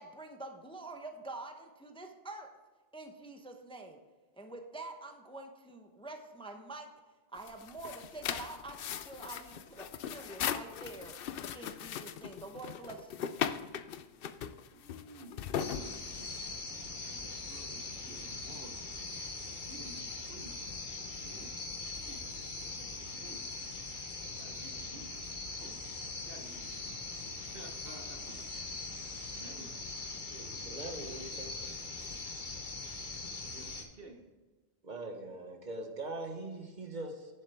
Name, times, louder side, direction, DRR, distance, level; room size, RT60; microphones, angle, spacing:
voice 1, 0.0-2.5 2.9-4.0 4.3-6.9 7.3-11.1 11.5-13.4, right 2 dB, 5° left, 4 dB, 0.8 m, -46 dB
sound 1, 7.4-16.5, left 9 dB, 65° left, 0.7 m, -39 dB
voice 2, 14.7-18.8 19.4-20.6 21.1-21.6 22.0-22.4 23.2-23.5 24.3-25.8 26.3-28.8 29.1-29.8 33.5-34.3, right 2 dB, 65° right, 4 dB, 1.3 m, -53 dB
sound 2, 15.6-33.8, left 3 dB, 50° left, 1.4 m, -41 dB
voice 3, 30.3-31.7 34.8-37.3, right 2 dB, 45° right, 3 dB, 1.5 m, -42 dB
10.5 x 7.3 x 3.5 m, 1.3 s
omnidirectional pair, 1.1 m